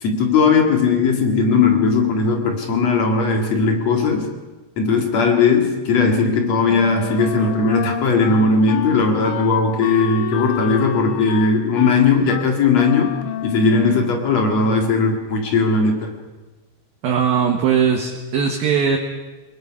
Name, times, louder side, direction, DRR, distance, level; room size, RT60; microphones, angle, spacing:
voice 1, 0.0-4.3 4.8-13.1 13.4-16.1, left 4 dB, 50° left, 3 dB, 2.2 m, -18 dB
Wind instrument woodwind instrument, 6.7-14.3, left 10 dB, 70° left, 3.0 m, -29 dB
voice 2, 17.0-19.0, right 7 dB, 60° right, 1 dB, 2.6 m, -19 dB
24.0 x 22.0 x 6.0 m, 1.2 s
omnidirectional pair, 6.0 m